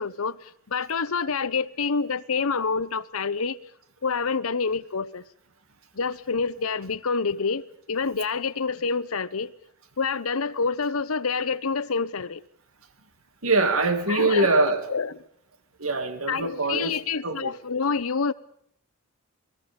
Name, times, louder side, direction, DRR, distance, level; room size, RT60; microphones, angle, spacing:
voice 1, 0.0-3.6 4.0-5.2 5.9-9.5 10.0-12.4 14.1-14.5 14.9-15.1 16.3-18.3, left 5 dB, 90° left, 0.9 m, -27 dB
voice 2, 13.4-14.9 15.8-17.5, right 2 dB, 85° right, 2.3 m, -23 dB
28.5 x 20.0 x 5.3 m
head